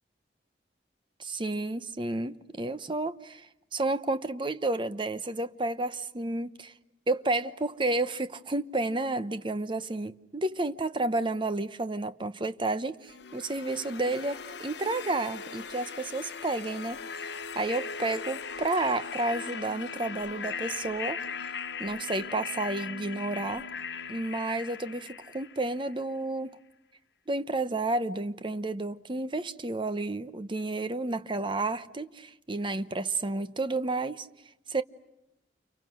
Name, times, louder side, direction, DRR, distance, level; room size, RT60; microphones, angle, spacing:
voice 1, 1.2-6.7 7.1-21.2 21.8-23.7 24.1-26.6 27.3-34.3 34.7-34.8, right 2 dB, 30° right, 0.9 m, -31 dB
sound 1, 13.1-26.0, left 6 dB, 70° left, 1.1 m, -39 dB
29.5 x 29.0 x 6.4 m
head